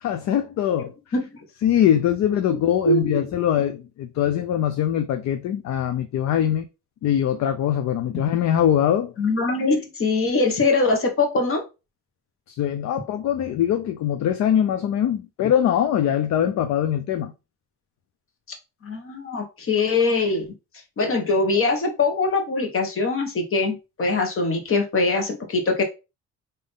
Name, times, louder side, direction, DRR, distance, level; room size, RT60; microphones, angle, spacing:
voice 1, 0.0-0.9 1.6-6.6 7.0-9.1 12.5-17.3, left 10 dB, 65° left, 0.5 m, -22 dB
voice 2, 2.8-3.2 9.2-11.6 18.8-20.5 21.0-25.8, left 3 dB, 45° left, 1.3 m, -22 dB
3.7 x 2.7 x 3.6 m
cardioid pair, 90°, 30 cm